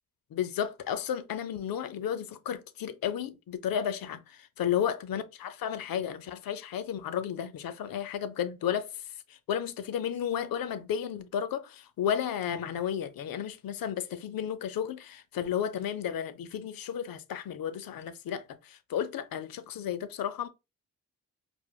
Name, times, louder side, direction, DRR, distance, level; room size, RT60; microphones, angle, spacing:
voice 1, 0.3-9.0 9.3-20.5, left 9 dB, 65° left, 0.5 m, -33 dB
4.6 x 2.0 x 2.3 m
cardioid pair, 60°, 38 cm